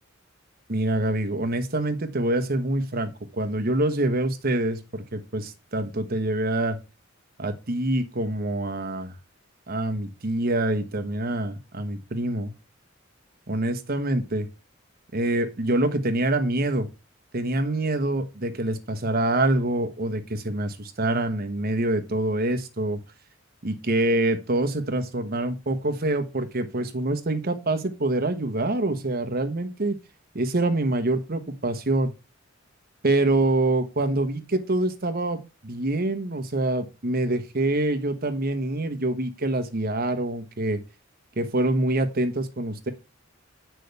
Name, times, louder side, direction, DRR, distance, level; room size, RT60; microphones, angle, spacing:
voice 1, 0.7-6.8 7.4-9.1 9.7-12.5 13.5-14.5 15.1-16.9 17.3-23.0 23.6-30.0 30.3-32.1 33.0-40.8 41.4-42.9, right 2 dB, 45° right, 7 dB, 1.1 m, -25 dB
8.1 x 6.2 x 3.4 m, 0.28 s
head